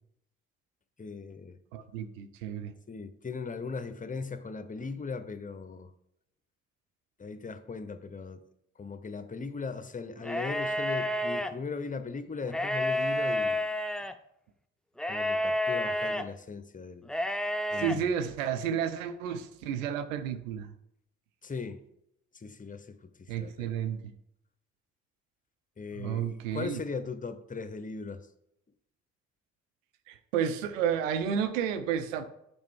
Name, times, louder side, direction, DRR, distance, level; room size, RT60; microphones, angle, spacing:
voice 1, 1.0-1.6 2.9-5.9 7.2-8.4 8.8-13.6 15.1-17.1 17.7-18.1 21.4-21.8 22.3-23.7 25.8-28.3, left 4 dB, 20° left, 0.9 m, -38 dB
voice 2, 1.7-2.7 17.8-20.7 23.3-24.0 25.9-26.8 30.1-32.2, right 8 dB, 70° right, 0.8 m, -31 dB
sound 1, 10.2-11.5 12.4-14.1 15.0-16.2 17.1-18.0, left 1 dB, ahead, 0.5 m, -30 dB
9.3 x 6.9 x 3.6 m
figure-of-eight pair, 45°, 40 cm